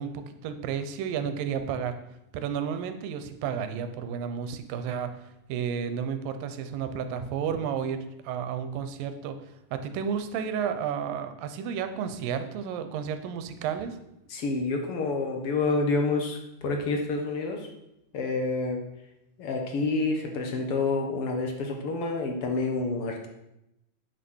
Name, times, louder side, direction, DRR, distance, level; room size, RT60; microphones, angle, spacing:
voice 1, 0.0-2.0 2.3-5.2 5.5-9.4 9.7-14.0, right 7 dB, 80° right, 9 dB, 2.5 m, -32 dB
voice 2, 14.3-17.7 18.1-18.8 19.4-23.3, left 3 dB, 60° left, 3 dB, 1.6 m, -28 dB
9.3 x 6.6 x 6.2 m, 0.85 s
omnidirectional pair, 4.1 m